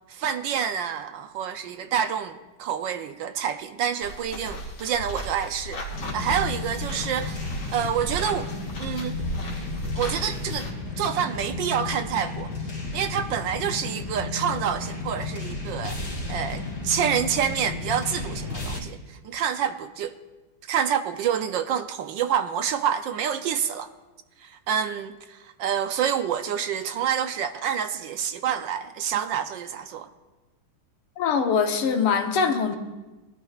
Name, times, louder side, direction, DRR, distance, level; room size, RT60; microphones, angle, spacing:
voice 1, 0.1-7.4 7.7-8.5 8.8-9.2 9.9-10.7 11.0-12.5 12.9-16.0 16.3-20.2 20.7-23.9 24.4-30.1, right 8 dB, 75° right, 1.2 m, -27 dB
sound 1, 4.0-10.7, equal, 70° left, 2.9 m, -35 dB
sound 2, 5.9-18.8, left 3 dB, 55° left, 3.3 m, -33 dB
voice 2, 31.2-32.8, left 6 dB, 90° left, 1.9 m, -23 dB
22.0 x 12.5 x 2.4 m
omnidirectional pair, 2.3 m